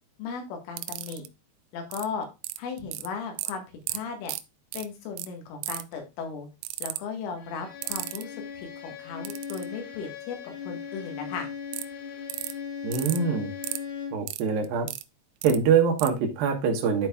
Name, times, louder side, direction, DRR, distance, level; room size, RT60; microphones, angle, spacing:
voice 1, 0.2-1.2 1.7-2.3 2.6-4.3 4.7-6.5 6.8-10.4 10.6-11.5, left 5 dB, 85° left, 3 dB, 4.0 m, -36 dB
sound 1, 0.8-1.3 1.9-2.1 2.4-3.1 3.4-3.5 3.9-4.0 4.3-4.4 4.7-4.9 5.2-5.3 5.6-5.9 6.6-7.0 7.8-8.2 9.3-9.6 11.7-11.8 12.3-12.5 12.9-13.2 13.6-13.8 14.3-15.0 15.4-15.6 16.0-16.1, right 16 dB, 85° right, 2.9 m, -34 dB
Bowed string instrument, 7.4-14.3, left 7 dB, 70° left, 6.5 m, -38 dB
voice 2, 12.8-13.5 14.1-14.9 15.4-17.1, right 6 dB, 70° right, 3 dB, 2.4 m, -24 dB
12.5 x 4.6 x 2.3 m, 0.25 s
omnidirectional pair, 5.5 m